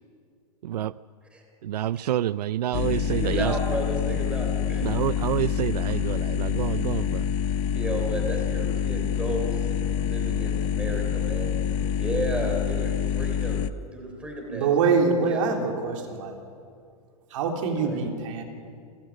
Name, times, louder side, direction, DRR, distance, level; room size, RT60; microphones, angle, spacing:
voice 1, 0.6-0.9 1.6-3.6 4.8-7.3, right 12 dB, 85° right, 18 dB, 0.5 m, -28 dB
sound 1, 2.7-13.7, left 8 dB, 25° left, 0.6 m, -26 dB
voice 2, 3.1-5.0 7.7-9.7 10.0-11.6 11.9-13.7 13.9-15.4 17.8-18.0, right 1 dB, 5° right, 2 dB, 3.4 m, -33 dB
voice 3, 14.5-16.4 17.3-18.4, right 5 dB, 55° right, 3 dB, 3.6 m, -24 dB
28.5 x 14.5 x 8.2 m, 2.3 s
hypercardioid pair, 160°, 20 cm